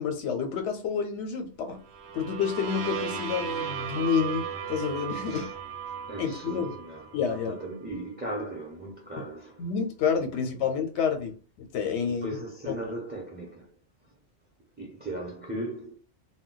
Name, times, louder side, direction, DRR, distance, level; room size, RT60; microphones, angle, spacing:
voice 1, 0.0-1.8 2.1-5.5 6.2-6.7 7.1-7.6 9.6-11.3 11.6-12.3 12.7-12.8, left 6 dB, 80° left, 0.9 m, -29 dB
sound 1, 1.8-7.7, right 7 dB, 70° right, 0.8 m, -36 dB
voice 2, 5.2-5.5 5.9-9.6 10.3-10.4 12.0-13.7 14.8-15.9, right 1 dB, 10° right, 0.5 m, -38 dB
2.2 x 2.2 x 3.7 m
omnidirectional pair, 1.2 m